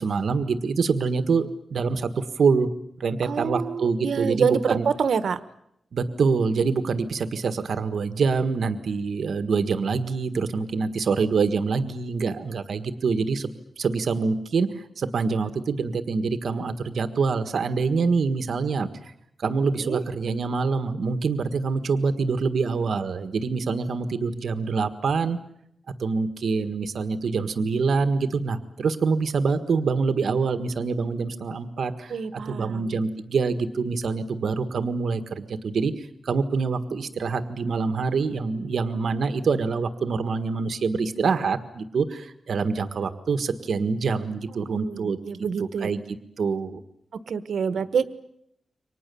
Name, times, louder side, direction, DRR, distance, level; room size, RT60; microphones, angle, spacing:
voice 1, 0.0-2.7 3.0-4.9 5.9-13.5 13.8-19.1 19.4-25.4 26.0-45.2 45.6-46.8 47.7-47.8, right 4 dB, 65° right, 9 dB, 1.6 m, -25 dB
voice 2, 3.2-5.4 19.8-20.0 32.1-33.0 44.6-45.9 47.3-48.1, right 6 dB, 85° right, 13 dB, 1.3 m, -27 dB
29.0 x 24.5 x 7.0 m, 0.77 s
wide cardioid pair, 165°, 0 cm